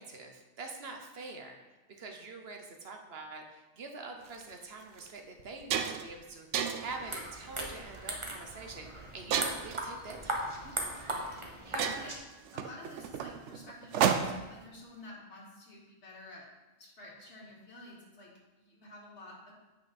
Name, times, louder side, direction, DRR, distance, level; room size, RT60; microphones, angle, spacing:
voice 1, 0.0-1.6 1.9-3.4 3.8-10.6 11.6-12.1, right 3 dB, 60° right, 3 dB, 1.1 m, -45 dB
sound 1, 4.3-4.4 5.0-5.1 5.4-6.1 6.5-7.0 7.7-8.0 9.3-9.8 11.0-11.1 11.4-11.5 11.8-14.6, right 7 dB, 85° right, 0.9 m, -32 dB
sound 2, 6.8-12.2, right 1 dB, 25° right, 1.0 m, -38 dB
voice 2, 12.5-16.5 16.8-19.5, left 1 dB, 70° left, -4 dB, 2.2 m, -50 dB
7.9 x 5.8 x 4.3 m, 1.1 s
omnidirectional pair, 1.2 m